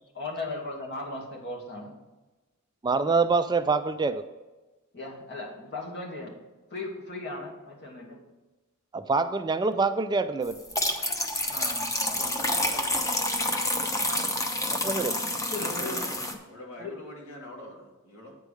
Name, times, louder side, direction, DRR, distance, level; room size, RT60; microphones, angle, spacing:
voice 1, 0.1-1.9 4.9-6.3 6.7-8.2 11.5-12.3 14.0-14.2 15.5-16.0 16.8-16.9, left 2 dB, 55° left, -1 dB, 2.1 m, -37 dB
voice 2, 2.8-4.2 8.9-10.6 14.8-15.2, right 4 dB, 20° right, 10 dB, 0.3 m, -25 dB
sound 1, 10.5-16.3, left 1 dB, 15° left, 0.9 m, -28 dB
voice 3, 12.1-13.1 15.6-16.1 16.4-18.3, left 1 dB, 75° left, -2 dB, 2.7 m, -44 dB
9.1 x 4.8 x 6.4 m, 1.2 s
head